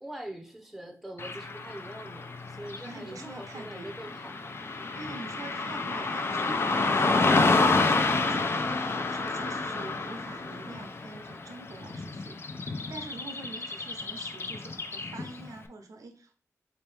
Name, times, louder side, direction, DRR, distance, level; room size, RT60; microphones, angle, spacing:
voice 1, 0.0-4.4 4.7-4.9, right 1 dB, ahead, 3 dB, 0.7 m, -43 dB
Car passing by / Traffic noise roadway noise, 1.2-15.5, left 3 dB, 45° left, 0.4 m, -29 dB
voice 2, 2.8-3.9 5.0-16.3, right 2 dB, 90° right, 5 dB, 0.8 m, -45 dB
4.2 x 3.0 x 3.4 m, 0.40 s
wide cardioid pair, 130°, 6 cm